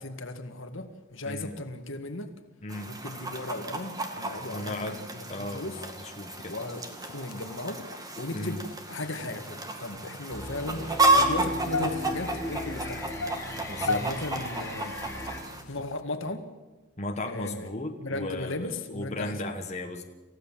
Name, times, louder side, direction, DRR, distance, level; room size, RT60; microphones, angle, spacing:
voice 1, 0.0-2.3 2.8-5.8 6.5-6.8 7.1-7.8 8.2-8.6 8.9-13.2 13.8-15.0 15.7-16.4 17.3-17.7 18.0-19.5, left 2 dB, 60° left, 7 dB, 1.9 m, -36 dB
voice 2, 1.2-1.5 2.6-2.9 4.5-5.0 5.3-6.5 8.3-8.6 13.7-14.0 17.0-20.0, left 2 dB, 30° left, 2 dB, 1.5 m, -36 dB
Chicken rooster, 2.7-15.6, right 2 dB, 15° right, 2.0 m, -31 dB
sound 1, 6.3-16.0, left 3 dB, 75° left, 1.0 m, -40 dB
sound 2, 10.3-15.4, left 1 dB, 15° left, 2.9 m, -37 dB
28.0 x 15.5 x 7.6 m, 1.2 s
head